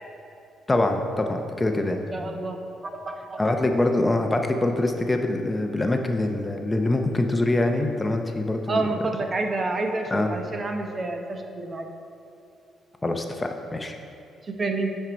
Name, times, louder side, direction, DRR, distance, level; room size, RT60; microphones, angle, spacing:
voice 1, 0.7-2.0 3.4-8.8 10.1-10.3 13.0-14.0, left 2 dB, 20° left, 4 dB, 0.6 m, -24 dB
voice 2, 2.1-3.4 8.7-11.9 14.4-14.9, right 2 dB, 35° right, 4 dB, 0.8 m, -29 dB
9.4 x 4.4 x 5.1 m, 2.6 s
cardioid pair, 90°, 0 cm